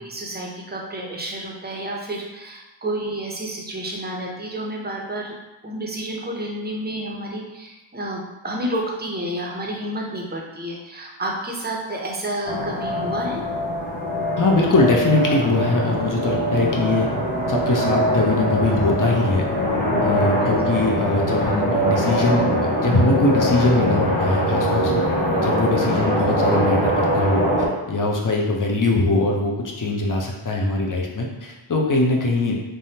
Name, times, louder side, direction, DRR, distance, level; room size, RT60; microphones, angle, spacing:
voice 1, 0.0-5.3 5.6-13.4 20.4-20.6, right 1 dB, 20° right, -1 dB, 0.5 m, -30 dB
sound 1, 12.5-27.7, equal, 80° left, 0.7 m, -22 dB
voice 2, 14.4-17.1 17.5-19.5 20.0-25.0 25.3-32.6, left 2 dB, 45° left, 0 dB, 0.6 m, -21 dB
3.3 x 2.1 x 2.7 m, 1.1 s
wide cardioid pair, 45°, 46 cm